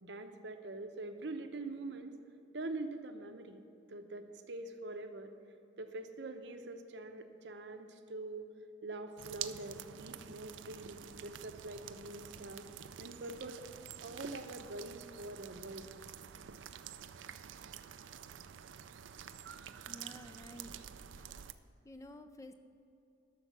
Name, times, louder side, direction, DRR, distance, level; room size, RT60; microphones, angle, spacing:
voice 1, 0.0-2.2 2.5-3.6 3.9-5.3 5.8-8.5 8.8-12.7 13.0-13.6 14.0-15.9, right 2 dB, 65° right, 7 dB, 0.8 m, -44 dB
sound 1, 9.2-21.5, right 9 dB, 85° right, 0.4 m, -48 dB
voice 2, 19.9-20.8 21.2-21.3 21.8-22.5, equal, 15° left, 8 dB, 0.4 m, -51 dB
12.5 x 6.7 x 6.0 m, 2.7 s
head